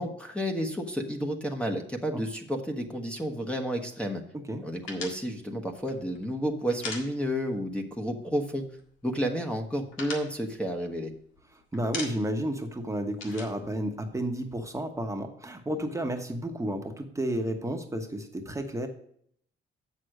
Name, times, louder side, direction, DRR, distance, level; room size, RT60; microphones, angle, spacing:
voice 1, 0.0-4.2 4.6-8.6 9.0-11.1, equal, 5° left, 3 dB, 1.2 m, -31 dB
sound 1, 4.9-7.7 7.9-8.1 8.4-9.1 9.4-11.4 11.7-12.5 12.7-14.6, left 3 dB, 90° left, 1.8 m, -40 dB
voice 2, 11.5-18.9, right 1 dB, 15° right, 3 dB, 1.2 m, -32 dB
7.6 x 6.4 x 6.4 m, 0.66 s
cardioid pair, 90°, 20 cm